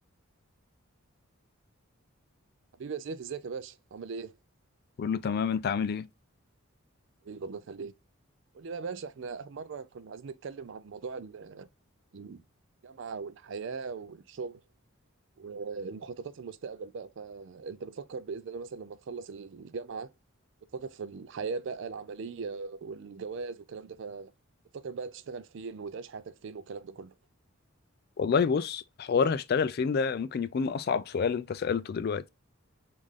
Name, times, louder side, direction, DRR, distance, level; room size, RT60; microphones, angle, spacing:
voice 1, 2.8-4.3 7.2-7.9 8.5-11.7 12.1-12.4 12.8-14.6 15.4-20.1 20.7-24.3 24.7-27.1, right 5 dB, 60° right, 0.4 m, -39 dB
voice 2, 5.0-6.1 28.2-32.2, left 6 dB, 50° left, 0.3 m, -28 dB
5.4 x 2.6 x 3.1 m
head